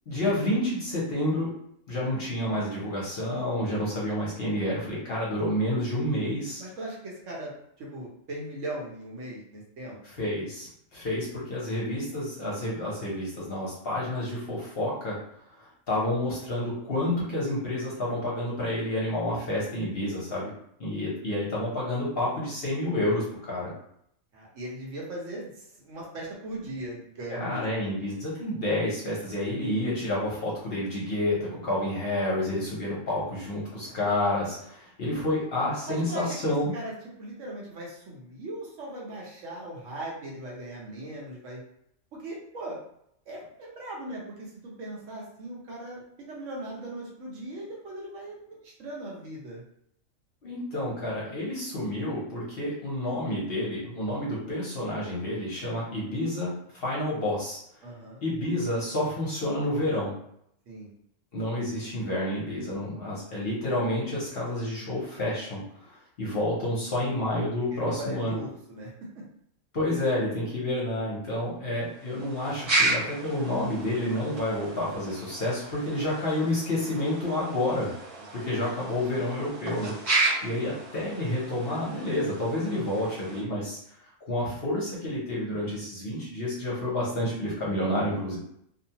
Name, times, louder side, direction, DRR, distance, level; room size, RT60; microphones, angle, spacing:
voice 1, 0.1-1.5 1.9-6.6 10.0-15.2 15.5-20.5 20.8-23.7 27.3-36.7 50.4-57.6 58.2-60.1 61.3-68.4 69.7-77.9 78.3-79.9 80.4-83.8 84.3-88.4, left 1 dB, 50° left, -5 dB, 0.9 m, -29 dB
voice 2, 6.6-10.0 24.3-27.6 33.9-34.0 35.9-41.6 42.1-42.8 43.3-46.0 46.3-49.6 57.8-58.2 60.7-60.9 66.2-66.3 67.9-68.9, right 1 dB, 65° right, -3 dB, 1.0 m, -39 dB
sound 1, 71.9-83.4, right 2 dB, 45° right, 0.5 m, -33 dB
2.6 x 2.2 x 2.8 m, 0.71 s
omnidirectional pair, 1.5 m